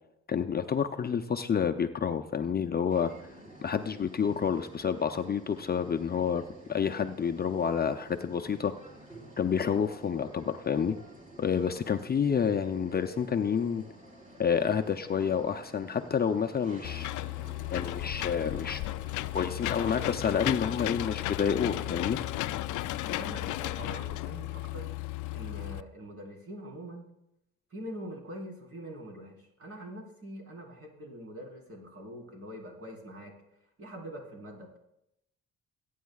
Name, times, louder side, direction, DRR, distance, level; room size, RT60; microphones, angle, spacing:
voice 1, 0.3-3.1 3.6-6.4 6.7-8.7 9.4-11.0 11.4-13.8 14.4-17.1 17.7-18.8 19.3-22.2, left 7 dB, 30° left, 7 dB, 0.6 m, -29 dB
sound 1, 2.9-22.8, right 1 dB, 25° right, 3.8 m, -51 dB
Engine / Mechanisms, 16.8-25.8, left 16 dB, 80° left, 0.4 m, -34 dB
voice 2, 23.0-24.9 25.3-27.0 27.7-33.3 33.8-34.8, right 1 dB, 50° right, -2 dB, 4.2 m, -44 dB
21.0 x 9.3 x 2.4 m, 0.84 s
cardioid pair, 90°, 30 cm